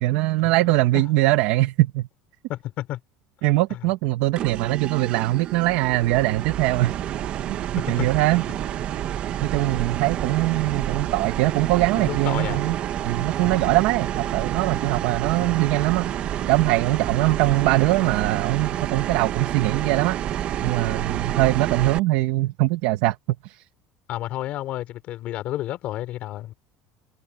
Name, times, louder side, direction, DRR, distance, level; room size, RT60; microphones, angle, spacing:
voice 1, 0.0-2.1 3.4-6.9 7.5-8.4 9.4-12.7 13.0-16.1 16.5-20.2 20.6-23.2 23.4-23.6, right 18 dB, 65° right, 1.5 m, -22 dB
voice 2, 2.5-3.0 3.7-3.8 7.8-8.1 11.9-12.6 13.4-13.7 15.4-15.5 17.0-17.2 24.1-26.5, left 14 dB, 40° left, 3.5 m, -31 dB
sound 1, 4.4-22.0, right 11 dB, 35° right, 1.3 m, -29 dB
cardioid pair, 180°, 3 cm